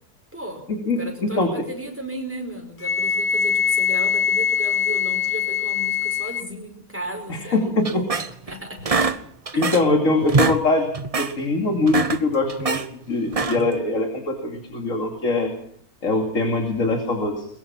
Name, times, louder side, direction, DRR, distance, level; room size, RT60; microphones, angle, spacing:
voice 1, 0.3-0.6 0.9-8.1 8.5-8.9 9.5-9.7, right 1 dB, 10° right, 2 dB, 4.9 m, -35 dB
voice 2, 0.9-1.5 7.3-8.0 9.6-10.9 11.2-12.8 13.1-15.5 16.0-17.5, left 2 dB, 55° left, 4 dB, 3.1 m, -22 dB
Wind instrument woodwind instrument, 2.8-6.5, left 7 dB, 40° left, 1.0 m, -22 dB
sound 1, 7.8-8.5 8.9-10.0 10.2-10.6 10.9-11.3 11.8-12.9 13.3-13.8, right 4 dB, 30° right, 0.8 m, -23 dB
22.5 x 22.0 x 6.0 m, 0.64 s
omnidirectional pair, 1.6 m